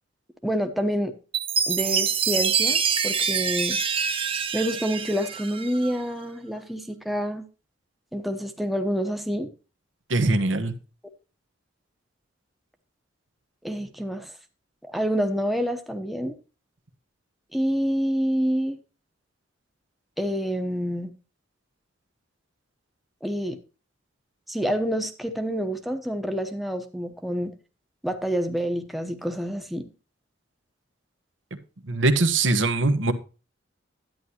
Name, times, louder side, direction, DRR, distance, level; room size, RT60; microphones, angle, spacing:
voice 1, 0.4-1.1 1.7-3.8 4.5-7.4 8.1-9.5 13.6-14.3 14.9-16.3 17.5-18.8 20.2-21.1 23.2-23.6 24.5-27.5 28.0-29.9, equal, ahead, 5 dB, 0.9 m, -27 dB
Chime, 1.3-5.9, right 6 dB, 30° right, 0.7 m, -25 dB
voice 2, 10.1-10.7 31.8-33.1, right 2 dB, 75° right, 9 dB, 1.2 m, -22 dB
10.5 x 9.7 x 2.9 m, 0.33 s
head